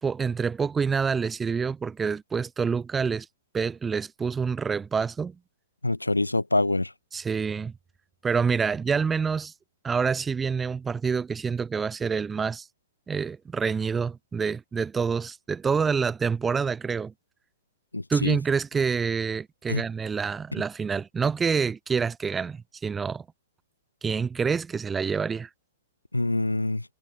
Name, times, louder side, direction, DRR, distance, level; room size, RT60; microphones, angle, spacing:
voice 1, 0.0-3.3 3.5-5.3 7.1-7.7 8.2-9.5 9.8-12.7 13.1-17.1 18.1-23.2 24.0-25.5, right 5 dB, 15° right, 4.2 m, -27 dB
voice 2, 5.8-6.9 17.9-18.4 19.7-19.8 26.1-26.8, left 2 dB, 85° left, 3.9 m, -25 dB
figure-of-eight pair, 110°, 0 cm